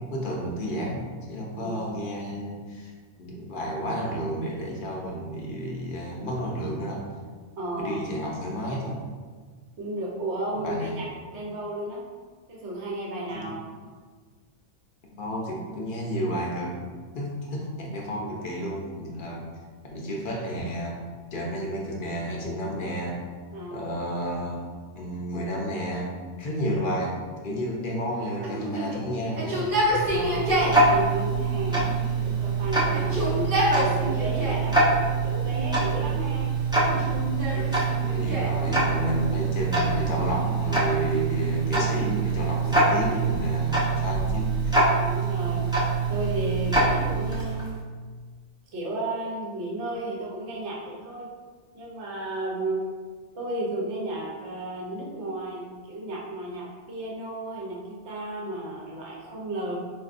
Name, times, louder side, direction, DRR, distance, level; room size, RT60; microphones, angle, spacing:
voice 1, 0.0-2.9 3.2-7.0 7.8-9.1 10.5-11.0 13.3-13.5 15.1-16.8 17.1-19.5 19.9-21.0 21.3-23.2 23.7-24.6 24.9-27.2 27.4-29.6 32.8-33.5 38.0-44.8, equal, 50° left, -2 dB, 0.7 m, -31 dB
voice 2, 1.6-1.9 7.6-8.0 9.8-12.0 12.5-13.5 23.5-23.9 30.1-31.8 32.2-33.4 33.8-36.5 36.8-37.1 37.5-37.9 38.2-38.3 45.0-47.8 48.7-51.3 51.7-52.8 53.3-59.8, right 1 dB, 70° right, -4 dB, 1.1 m, -34 dB
Yell, 28.4-30.8 31.7-32.4 32.8-34.7 35.4-36.1 36.8-38.6 40.0-40.8 41.7-43.4, equal, 50° right, 1.0 m, -29 dB
Tick-tock, 29.4-47.7, right 3 dB, 5° right, 0.3 m, -25 dB
4.4 x 2.6 x 2.5 m, 1.5 s
omnidirectional pair, 1.2 m